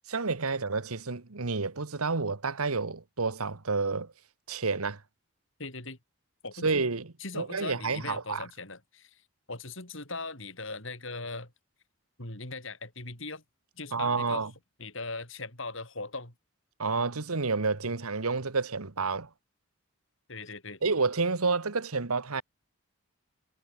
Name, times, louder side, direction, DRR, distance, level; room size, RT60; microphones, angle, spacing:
voice 1, 0.1-4.1 4.5-5.0 6.6-7.1 7.3-8.4 13.9-14.5 16.8-19.3 20.8-22.4, right 4 dB, 85° right, 1.4 m, -29 dB
voice 2, 5.6-6.0 6.4-6.7 7.2-9.2 9.5-11.5 12.2-13.4 13.8-14.5 14.8-16.3 20.3-20.8, left 3 dB, 60° left, 6.0 m, -39 dB
head